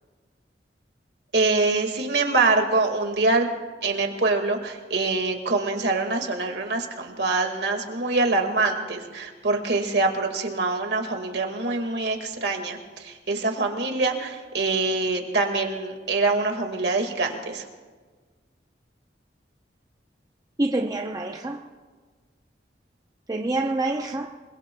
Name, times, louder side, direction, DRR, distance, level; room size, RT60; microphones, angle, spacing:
voice 1, 1.3-3.5 3.8-17.6, right 3 dB, 65° right, 2.0 m, -24 dB
voice 2, 20.6-21.6 23.3-24.4, right 2 dB, 20° right, 0.8 m, -26 dB
28.0 x 21.5 x 2.3 m
head